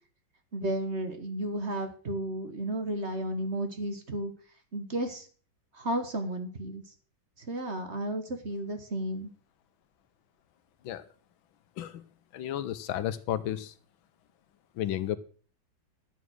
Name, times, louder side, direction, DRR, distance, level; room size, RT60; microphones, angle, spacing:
voice 1, 0.5-4.3 4.7-5.3 5.7-6.8 7.4-9.3, right 1 dB, 35° right, 6 dB, 1.4 m, -33 dB
voice 2, 12.3-13.7 14.8-15.2, left 11 dB, 80° left, 14 dB, 1.6 m, -32 dB
11.5 x 7.3 x 6.3 m, 0.42 s
omnidirectional pair, 2.1 m